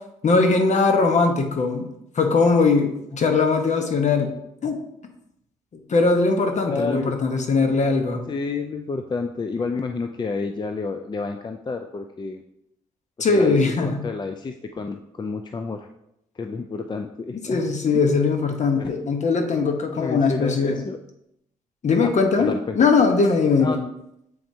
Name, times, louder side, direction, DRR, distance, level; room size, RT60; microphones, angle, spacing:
voice 1, 0.2-1.9 2.1-4.3 4.6-4.8 5.9-8.2 13.2-14.0 17.4-20.8 21.8-23.8, left 4 dB, 55° left, 4 dB, 1.1 m, -20 dB
voice 2, 6.6-7.2 8.3-12.4 13.2-15.9 16.4-17.6 18.8-18.9 20.0-21.0 22.0-22.1 22.4-22.9 23.6-23.8, left 4 dB, 30° left, 6 dB, 0.5 m, -30 dB
7.8 x 4.3 x 2.8 m, 0.80 s
supercardioid pair, 60°, 14 cm